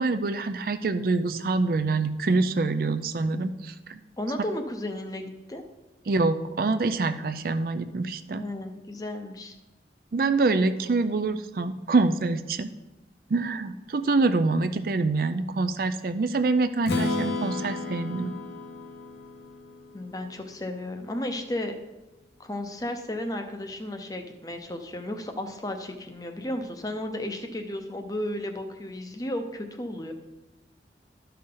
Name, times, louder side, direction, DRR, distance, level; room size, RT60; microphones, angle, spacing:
voice 1, 0.0-4.0 6.1-8.4 10.1-12.7 13.3-18.4, right 3 dB, 55° right, 10 dB, 0.4 m, -25 dB
voice 2, 4.2-5.6 8.3-9.6 19.9-21.8 22.4-30.1, left 1 dB, 20° left, 6 dB, 0.7 m, -34 dB
Strum, 16.8-20.8, left 2 dB, 70° left, 1.0 m, -33 dB
12.0 x 5.6 x 3.9 m, 1.0 s
head